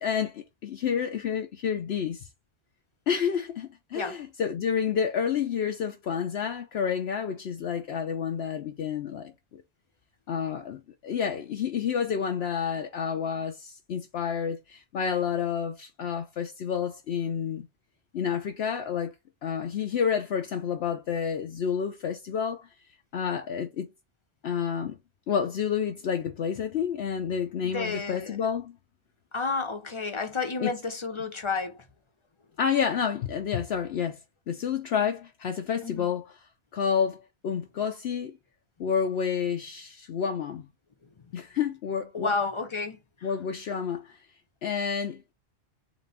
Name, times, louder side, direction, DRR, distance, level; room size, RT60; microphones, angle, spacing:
voice 1, 0.0-2.3 3.1-9.6 10.3-17.7 18.1-19.1 19.4-22.7 23.1-23.9 24.4-25.0 25.3-28.8 30.6-30.7 32.6-34.2 34.5-36.3 36.7-38.4 38.8-40.7 41.3-42.3 43.2-44.2 44.6-45.3, left 7 dB, 65° left, 0.9 m, -29 dB
voice 2, 27.6-28.4 29.3-31.9 35.8-36.1 41.3-41.4 42.1-43.3, left 4 dB, 30° left, 0.8 m, -31 dB
4.1 x 3.1 x 3.4 m
omnidirectional pair, 1.2 m